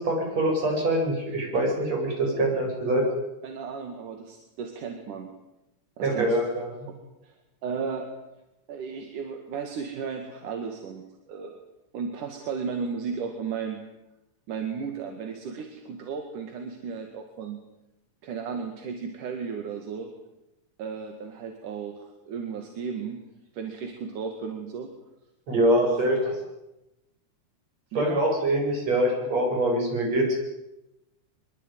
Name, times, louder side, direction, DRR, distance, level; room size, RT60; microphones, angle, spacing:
voice 1, 0.0-3.1 6.0-6.7 25.5-26.2 27.9-30.3, right 1 dB, 55° right, 0 dB, 9.3 m, -24 dB
voice 2, 3.4-5.3 6.0-6.4 6.9-7.0 7.2-7.4 7.6-8.1 8.7-11.6 11.9-13.8 14.5-17.6 18.2-20.1 20.8-23.2 23.5-24.9 25.8-26.0 27.9-28.2, right 6 dB, 80° right, 4 dB, 3.7 m, -34 dB
24.0 x 22.5 x 9.3 m, 0.92 s
omnidirectional pair, 3.6 m